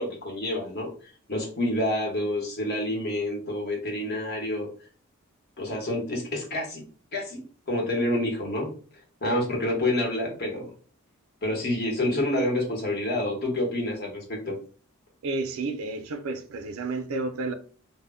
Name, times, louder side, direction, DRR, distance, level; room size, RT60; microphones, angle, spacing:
voice 1, 0.0-4.7 5.6-6.8 7.1-7.4 7.7-8.7 9.2-10.7 11.4-14.5, left 1 dB, 50° left, 0.9 m, -28 dB
voice 2, 15.2-17.5, right 3 dB, 85° right, 0.4 m, -31 dB
2.1 x 2.0 x 3.5 m
head